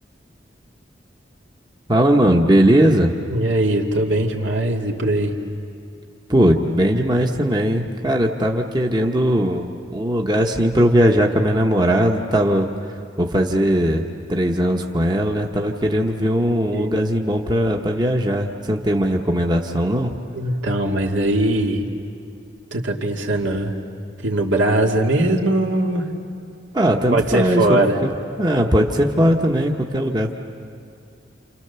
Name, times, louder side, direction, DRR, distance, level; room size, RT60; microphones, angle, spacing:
voice 1, 1.9-3.1 6.3-12.7 13.2-14.0 14.3-20.1 26.7-28.1 28.4-30.3, equal, 20° right, 2 dB, 1.0 m, -19 dB
voice 2, 3.3-5.3 16.7-16.9 20.3-21.9 22.7-23.7 24.2-26.0 27.1-28.0, right 1 dB, 85° right, 0 dB, 2.4 m, -20 dB
28.5 x 28.5 x 6.9 m, 2.5 s
head